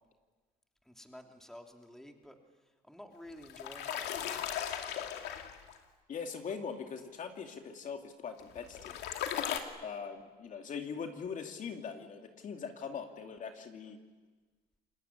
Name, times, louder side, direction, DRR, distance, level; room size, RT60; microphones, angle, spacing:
voice 1, 0.8-2.4 2.8-4.5, left 1 dB, 5° left, 3 dB, 2.9 m, -51 dB
sound 1, 3.3-5.8 8.4-9.6, left 10 dB, 80° left, 2.5 m, -37 dB
voice 2, 6.1-9.0 9.8-14.0, left 6 dB, 50° left, 4 dB, 2.5 m, -41 dB
28.0 x 20.5 x 9.9 m, 1.3 s
cardioid pair, 110°, 17 cm